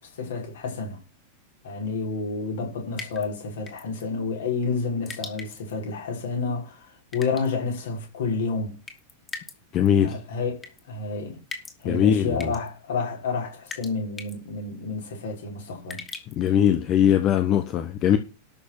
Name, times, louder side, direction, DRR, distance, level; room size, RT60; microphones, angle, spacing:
voice 1, 0.1-1.0 1.6-6.9 7.1-8.8 10.0-11.4 11.8-16.0, left 4 dB, 60° left, 5.7 m, -30 dB
sound 1, 2.9-3.3 3.7-4.0 5.1-5.7 7.1-7.5 8.9-9.6 9.8-9.9 10.6-10.8 11.5-11.8 12.4-12.7 13.7-13.9 14.2-14.4 15.9-16.5, left 4 dB, 20° left, 3.0 m, -39 dB
voice 2, 9.7-10.2 11.8-12.5 16.3-18.2, left 9 dB, 35° left, 1.5 m, -21 dB
13.0 x 6.7 x 6.1 m
figure-of-eight pair, 90°, 0 cm